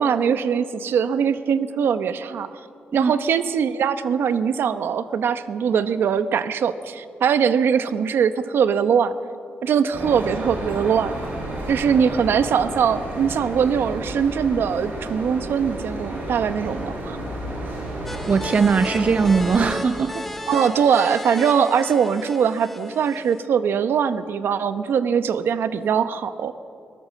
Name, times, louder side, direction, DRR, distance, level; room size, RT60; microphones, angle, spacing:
voice 1, 0.0-2.6 2.9-9.1 9.6-11.2 11.7-17.2 20.5-26.5, right 7 dB, 75° right, 12 dB, 0.9 m, -21 dB
sound 1, 9.9-19.7, right 1 dB, 55° right, 7.0 m, -32 dB
sound 2, 18.1-23.5, left 1 dB, 5° left, 1.6 m, -34 dB
voice 2, 18.2-20.2, right 5 dB, 40° right, 11 dB, 0.7 m, -20 dB
22.0 x 19.0 x 7.5 m, 2.5 s
wide cardioid pair, 155°, 4 cm